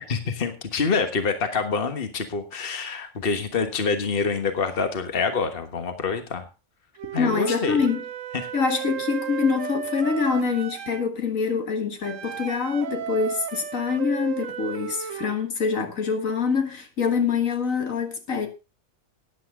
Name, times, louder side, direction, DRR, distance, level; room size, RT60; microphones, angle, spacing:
voice 1, 0.1-6.5 7.1-7.8 8.3-8.5, left 5 dB, 45° left, 1.6 m, -26 dB
Wind instrument woodwind instrument, 7.0-11.1 12.0-15.4, right 9 dB, 75° right, 1.2 m, -34 dB
voice 2, 7.2-8.0 8.5-18.5, left 5 dB, 75° left, 2.1 m, -25 dB
15.0 x 9.9 x 3.7 m
omnidirectional pair, 1.4 m